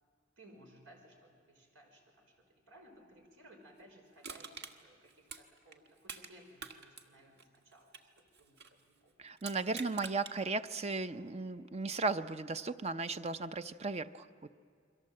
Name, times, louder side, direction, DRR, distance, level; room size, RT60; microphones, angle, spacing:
voice 1, 0.4-7.9 8.4-9.1, right 1 dB, 90° right, 2 dB, 5.3 m, -60 dB
Crushing, 4.2-6.3 6.6-8.8 9.4-10.4 10.8-10.9, right 5 dB, 60° right, 1.6 m, -47 dB
voice 2, 9.2-14.3, right 3 dB, 35° right, 11 dB, 0.6 m, -36 dB
29.0 x 23.0 x 7.7 m, 2.2 s
head